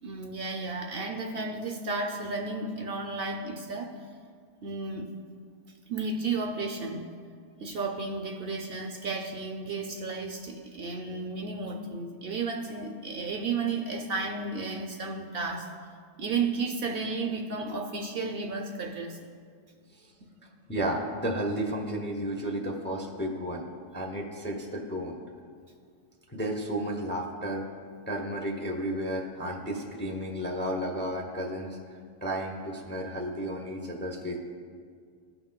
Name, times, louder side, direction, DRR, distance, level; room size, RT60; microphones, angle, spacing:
voice 1, 0.0-3.9 4.6-5.1 5.9-7.1 7.6-15.7 16.2-19.2 20.2-20.3, right 4 dB, 60° right, 3 dB, 0.7 m, -33 dB
voice 2, 20.7-23.7 23.9-25.2 26.3-27.7 28.1-34.4, right 1 dB, 15° left, 0 dB, 0.5 m, -33 dB
15.5 x 5.9 x 2.2 m, 2.1 s
omnidirectional pair, 1.3 m